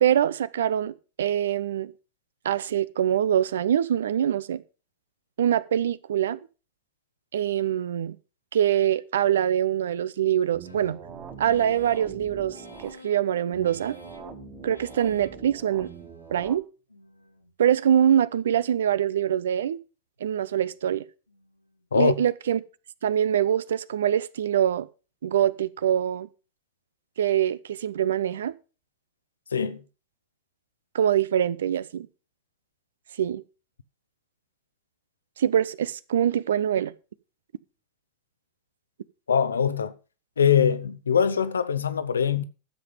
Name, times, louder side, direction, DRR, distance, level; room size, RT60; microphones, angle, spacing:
voice 1, 0.0-1.9 2.4-4.6 5.4-6.4 7.3-8.1 8.5-11.0 11.4-12.6 12.8-14.0 14.6-15.9 16.3-16.6 17.6-19.8 20.2-21.0 21.9-22.6 23.0-24.9 25.2-26.3 27.2-28.5 30.9-32.1 33.2-33.4 35.4-36.9, right 10 dB, 60° right, 0.7 m, -24 dB
sound 1, 10.5-12.9 13.5-16.5, right 7 dB, 25° right, 2.2 m, -44 dB
sound 2, 10.6-16.5 16.9-17.5 18.0-18.6 19.1-19.7 20.2-20.8 21.3-21.8, left 2 dB, 90° left, 2.0 m, -49 dB
voice 2, 29.5-29.8 39.3-39.9 40.4-42.4, left 7 dB, 70° left, 0.8 m, -22 dB
13.0 x 7.7 x 5.3 m
figure-of-eight pair, 90°, 0 cm